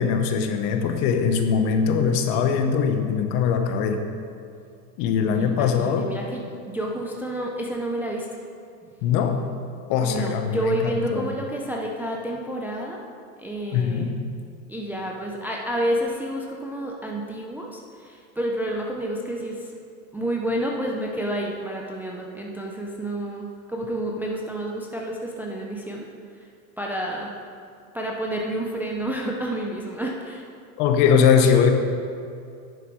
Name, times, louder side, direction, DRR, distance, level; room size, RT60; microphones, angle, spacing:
voice 1, 0.0-4.1 5.0-6.2 9.0-9.5 9.9-11.3 13.7-14.3 30.8-31.7, left 6 dB, 50° left, 6 dB, 1.1 m, -21 dB
voice 2, 5.2-8.3 10.0-13.0 13.4-14.2 14.7-19.7 20.1-26.1 26.4-26.5 26.8-27.3 27.9-30.5, right 1 dB, 5° right, -1 dB, 0.4 m, -29 dB
10.0 x 7.0 x 4.8 m, 2.4 s
supercardioid pair, 130°, 43 cm